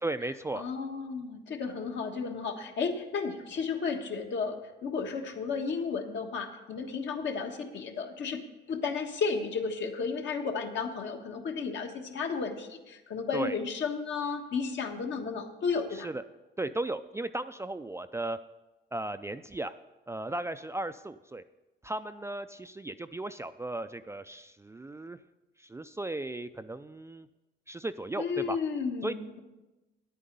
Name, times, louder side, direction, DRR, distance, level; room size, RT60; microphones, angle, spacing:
voice 1, 0.0-0.6 13.3-13.6 15.9-16.2 16.6-18.4 18.9-19.7 20.1-21.4 21.8-25.2 25.6-27.3 27.7-28.6 29.0-29.1, right 2 dB, 15° right, 10 dB, 0.3 m, -36 dB
voice 2, 0.5-8.4 8.7-16.1 28.2-29.4, left 5 dB, 65° left, 3 dB, 1.4 m, -33 dB
9.9 x 8.6 x 5.3 m, 1.1 s
cardioid pair, 90°, 20 cm